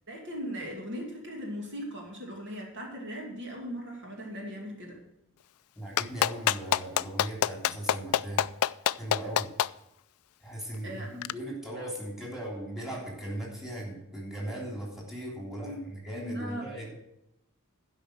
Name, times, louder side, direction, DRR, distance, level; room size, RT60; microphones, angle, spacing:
voice 1, 0.1-5.0 10.8-11.1 15.6-15.8 16.1-16.7, equal, 60° right, 0 dB, 2.5 m, -38 dB
voice 2, 5.8-8.5 9.0-9.5 10.4-16.9, right 1 dB, ahead, -2 dB, 3.3 m, -38 dB
Clapping, 6.0-9.7 11.2-11.3, left 11 dB, 85° left, 0.3 m, -25 dB
11.5 x 5.6 x 7.7 m, 0.84 s
head